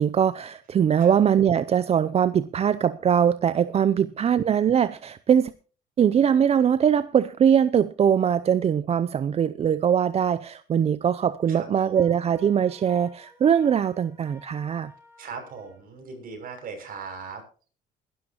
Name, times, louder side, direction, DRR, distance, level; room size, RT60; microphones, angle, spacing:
voice 1, 0.0-5.5 6.0-14.9, right 8 dB, 35° right, 0.6 m, -22 dB
voice 2, 11.5-12.1 15.2-17.4, right 5 dB, 60° right, 6.7 m, -39 dB
Wind instrument woodwind instrument, 11.9-15.9, equal, 15° right, 4.8 m, -52 dB
21.0 x 12.0 x 3.0 m
cardioid pair, 110°, 17 cm